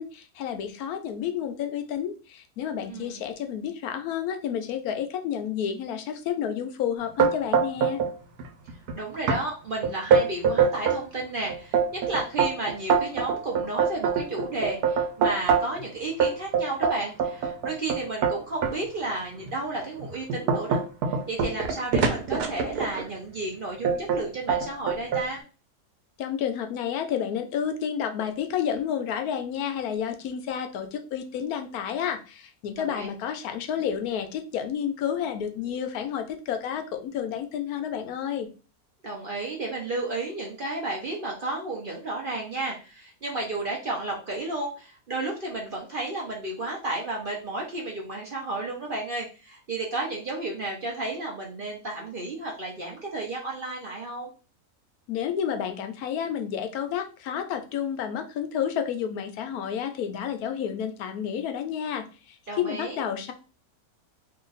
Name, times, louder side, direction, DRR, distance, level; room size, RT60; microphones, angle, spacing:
voice 1, 0.0-8.0 26.2-38.5 55.1-63.3, left 8 dB, 80° left, 8 dB, 1.1 m, -30 dB
voice 2, 2.9-3.2 8.9-25.4 32.8-33.1 39.0-54.3 62.5-63.0, right 2 dB, 50° right, -1 dB, 0.7 m, -32 dB
sound 1, 7.2-8.1 8.4-8.9 9.3-9.4 9.8-11.0 11.5-15.8 16.2-18.7 19.4-19.5 20.0-23.1 23.8-24.2 24.5-25.3, right 6 dB, 85° right, 1.2 m, -24 dB
2.9 x 2.5 x 3.9 m, 0.34 s
omnidirectional pair, 1.6 m